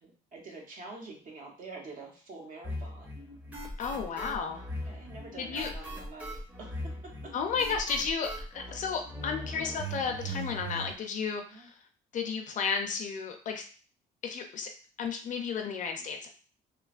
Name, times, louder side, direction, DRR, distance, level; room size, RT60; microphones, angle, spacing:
voice 1, 0.0-3.1 4.0-4.4 4.8-6.8 7.0-7.3 11.5-11.7, right 3 dB, 50° right, -1 dB, 1.0 m, -46 dB
sound 1, 2.6-10.9, equal, 10° right, 0.7 m, -39 dB
voice 2, 3.8-4.6 5.4-5.7 7.3-11.7 12.1-13.6 14.2-14.7 15.0-16.3, left 6 dB, 50° left, 4 dB, 0.5 m, -33 dB
3.0 x 2.1 x 2.4 m, 0.40 s
cardioid pair, 110°, 17 cm